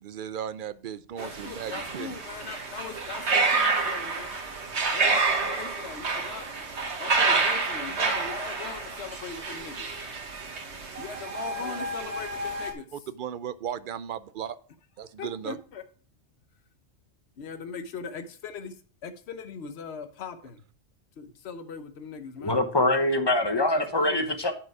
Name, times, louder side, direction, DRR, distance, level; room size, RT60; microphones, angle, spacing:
voice 1, 0.0-2.2 12.9-14.6 15.0-15.6, right 9 dB, 60° right, 0.6 m, -36 dB
voice 2, 1.2-4.3 4.9-6.5 7.0-9.9 11.0-12.9 15.2-15.8 17.4-18.7 19.0-20.6 21.2-22.6 23.7-24.3, left 6 dB, 75° left, 1.1 m, -40 dB
sound 1, 1.2-12.7, right 4 dB, 80° right, 1.6 m, -28 dB
voice 3, 22.4-24.5, left 2 dB, 25° left, 1.0 m, -24 dB
10.0 x 4.9 x 4.7 m
omnidirectional pair, 1.1 m